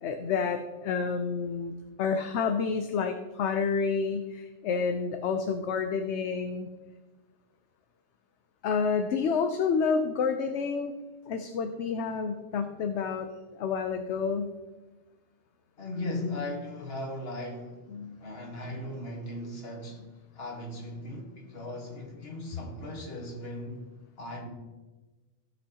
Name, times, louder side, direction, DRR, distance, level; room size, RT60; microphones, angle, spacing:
voice 1, 0.0-6.7 8.6-10.9 11.3-13.3 13.6-14.5 17.9-18.4, left 5 dB, 70° left, 0.9 m, -29 dB
voice 2, 15.8-17.9 18.2-20.1 20.4-23.9 24.2-24.5, left 1 dB, 55° left, 1.8 m, -37 dB
16.0 x 6.2 x 2.9 m
omnidirectional pair, 1.3 m